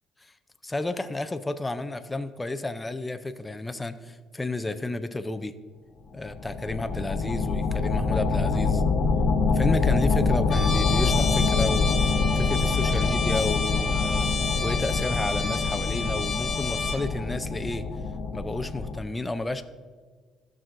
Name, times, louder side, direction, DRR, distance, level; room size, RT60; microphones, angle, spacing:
voice 1, 0.6-5.5 6.1-8.8 9.5-12.0 12.4-14.3 14.6-17.8 18.3-19.6, left 2 dB, 10° left, 9 dB, 0.4 m, -31 dB
sound 1, 6.2-19.0, left 4 dB, 50° left, 0.8 m, -25 dB
Trumpet, 10.5-17.0, left 5 dB, 30° left, 1.6 m, -30 dB
13.5 x 6.0 x 2.5 m, 1.5 s
cardioid pair, 130°, 0 cm